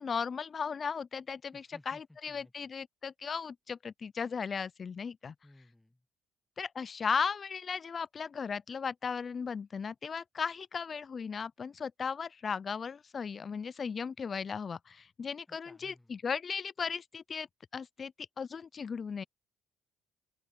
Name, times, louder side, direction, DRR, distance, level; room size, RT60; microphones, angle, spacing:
voice 1, 0.0-5.3 6.6-17.5 17.7-19.2, left 6 dB, 40° left, 0.4 m, -36 dB
voice 2, 1.5-2.5 5.4-6.0 15.5-16.3, left 1 dB, 10° left, 1.3 m, -58 dB
open air
hypercardioid pair, 60°, 0 cm